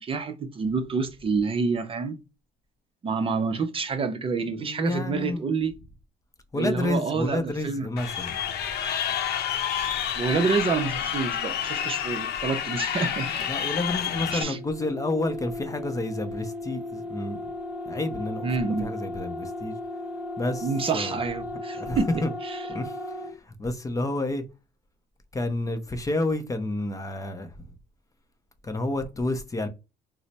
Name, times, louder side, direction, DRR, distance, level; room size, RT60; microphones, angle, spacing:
voice 1, 0.0-2.2 3.0-5.7 6.5-7.9 10.2-13.4 14.3-14.6 18.4-18.9 20.6-22.7, right 4 dB, 35° right, 0.5 m, -28 dB
voice 2, 4.6-5.5 6.5-8.4 13.5-17.4 17.9-18.5 18.8-19.7 20.4-21.2 21.7-22.3 22.7-24.4 25.3-27.7 28.6-29.7, left 2 dB, 20° left, 0.6 m, -30 dB
Crowd, 8.0-14.4, left 9 dB, 75° left, 0.7 m, -29 dB
sound 1, 14.3-23.4, left 2 dB, 10° right, 0.9 m, -36 dB
3.1 x 2.0 x 4.1 m
cardioid pair, 110°, 17 cm